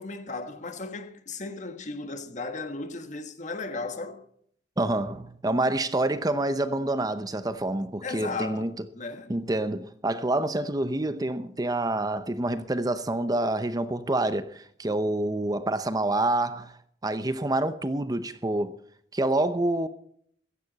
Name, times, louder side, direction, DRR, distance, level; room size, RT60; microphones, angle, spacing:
voice 1, 0.0-4.2 8.0-9.3, left 3 dB, 45° left, 1.5 m, -36 dB
voice 2, 4.8-8.7 9.3-16.7 17.0-18.7 19.1-19.9, right 2 dB, 20° right, 0.8 m, -27 dB
15.5 x 14.5 x 4.1 m
head